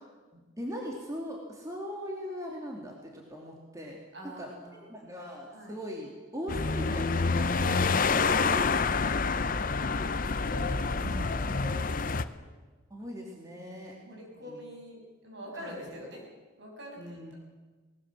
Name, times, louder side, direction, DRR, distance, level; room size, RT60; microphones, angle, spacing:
voice 1, 0.3-4.0 4.2-4.5 4.9-8.7 9.0-9.7 10.8-11.2 12.9-13.9 14.4-14.6 15.5-15.8 17.0-17.3, equal, 15° right, -1 dB, 2.6 m, -40 dB
voice 2, 4.1-5.2 5.5-5.8 9.7-12.5 13.6-16.2 16.6-17.4, left 1 dB, 60° right, 0 dB, 7.1 m, -46 dB
sound 1, 6.5-12.3, left 4 dB, 45° left, 0.7 m, -27 dB
19.5 x 19.5 x 7.5 m, 1.3 s
head